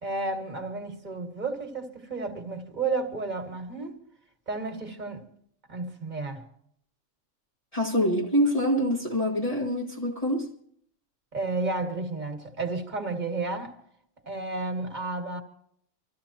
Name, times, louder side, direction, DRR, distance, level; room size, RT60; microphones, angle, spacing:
voice 1, 0.0-4.0 4.5-5.2 5.7-6.4 11.3-13.8 14.3-15.4, right 3 dB, 35° right, 1.9 m, -32 dB
voice 2, 7.7-10.5, equal, 30° left, 1.8 m, -25 dB
26.5 x 14.0 x 2.9 m
omnidirectional pair, 1.3 m